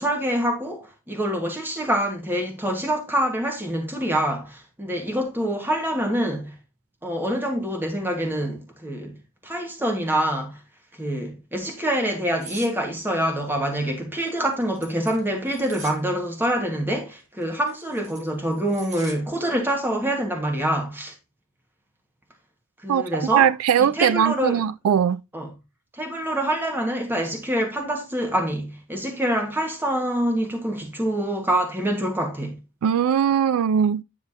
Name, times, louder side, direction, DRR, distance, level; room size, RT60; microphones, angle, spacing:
voice 1, 0.0-6.5 7.0-9.2 9.4-10.6 10.9-21.1 22.8-23.5 23.8-24.6 25.3-25.5 25.9-32.6, right 1 dB, 10° right, 1.5 m, -26 dB
sound 1, 12.4-12.7 14.2-16.0 17.4-19.2 19.6-19.8, right 3 dB, 35° right, 1.7 m, -42 dB
voice 2, 22.9-25.2 32.8-34.0, right 8 dB, 80° right, 0.3 m, -20 dB
9.8 x 5.7 x 2.8 m
head